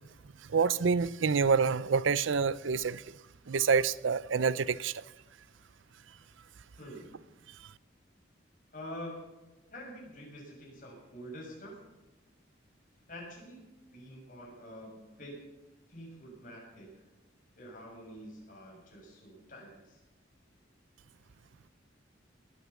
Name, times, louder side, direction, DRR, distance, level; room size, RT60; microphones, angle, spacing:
voice 1, 0.5-3.0 3.5-5.0, right 5 dB, 80° right, 0.5 m, -27 dB
voice 2, 6.8-7.2 8.7-9.3 9.7-11.7 13.1-15.5 15.9-16.9 17.6-20.0, equal, 40° left, 7.1 m, -47 dB
20.0 x 9.5 x 7.2 m
head